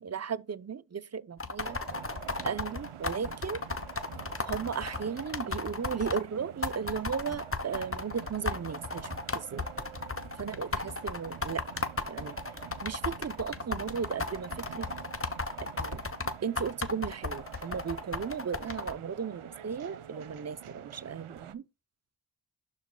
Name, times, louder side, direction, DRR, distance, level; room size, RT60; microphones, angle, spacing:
voice 1, 0.0-1.8 2.4-3.6 4.5-9.6 10.4-11.6 12.1-12.4 12.8-14.9 15.6-16.0 16.4-21.6, right 6 dB, 35° right, 0.5 m, -36 dB
sound 1, 1.4-6.2 6.6-18.9, left 3 dB, 25° left, 1.0 m, -35 dB
sound 2, 1.6-21.5, right 10 dB, 85° right, 0.7 m, -47 dB
12.0 x 4.8 x 2.2 m
wide cardioid pair, 50°, 50 cm